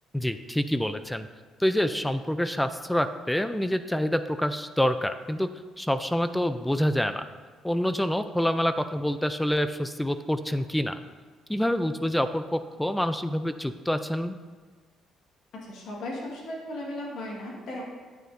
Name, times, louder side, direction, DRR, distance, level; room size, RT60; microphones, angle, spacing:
voice 1, 0.1-1.3 1.6-5.5 5.8-7.2 7.6-11.0 11.5-14.3, equal, 5° left, 11 dB, 0.3 m, -27 dB
voice 2, 15.5-17.8, left 1 dB, 70° left, -2 dB, 1.5 m, -36 dB
9.0 x 6.6 x 2.6 m, 1.5 s
cardioid pair, 85°, 0 cm